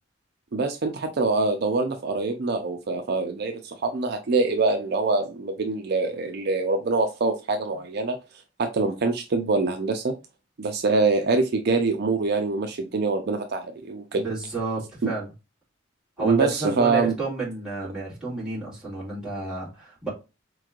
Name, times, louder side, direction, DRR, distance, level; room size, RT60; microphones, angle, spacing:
voice 1, 0.5-8.2 8.6-10.1 10.6-14.2 15.0-15.1 16.2-17.1, right 3 dB, 55° right, 0.5 m, -24 dB
voice 2, 14.1-15.3 16.2-20.1, right 3 dB, 5° right, 2.1 m, -30 dB
4.3 x 3.1 x 2.4 m
head